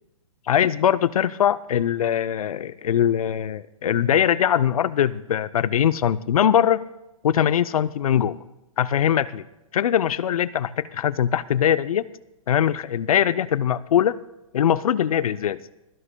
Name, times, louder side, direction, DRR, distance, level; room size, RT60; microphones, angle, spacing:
voice 1, 0.5-6.8 7.2-8.4 8.8-9.4 9.7-12.1 12.5-14.2 14.5-15.6, left 9 dB, 85° left, 16 dB, 0.5 m, -21 dB
27.0 x 11.0 x 2.2 m, 0.96 s
hypercardioid pair, 145°, 18 cm